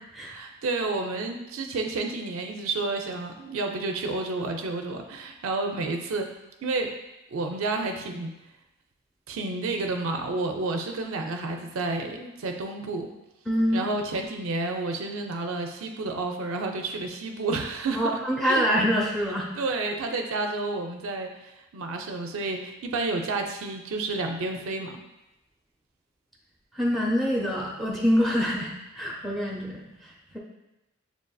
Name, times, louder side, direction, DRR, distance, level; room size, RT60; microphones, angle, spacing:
voice 1, 0.2-6.3 6.6-6.9 7.3-8.3 9.3-13.1 13.7-18.1 18.4-18.7 19.6-25.0, right 3 dB, 70° right, 3 dB, 0.4 m, -30 dB
voice 2, 13.5-13.9 18.0-19.5 26.8-29.8, equal, ahead, -4 dB, 0.7 m, -25 dB
6.9 x 2.5 x 2.3 m, 0.95 s
head